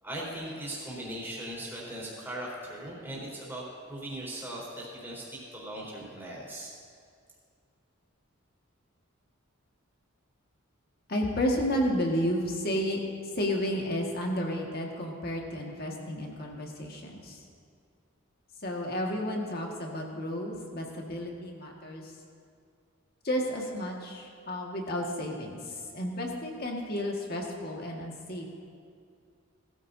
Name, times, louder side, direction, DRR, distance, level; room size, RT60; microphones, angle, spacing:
voice 1, 0.0-6.7, right 1 dB, 10° right, -5 dB, 4.0 m, -39 dB
voice 2, 11.1-13.0 13.4-17.4 18.6-22.1 23.2-25.6 25.9-28.5, equal, 45° left, 0 dB, 1.8 m, -32 dB
20.0 x 14.0 x 2.7 m, 2.3 s
head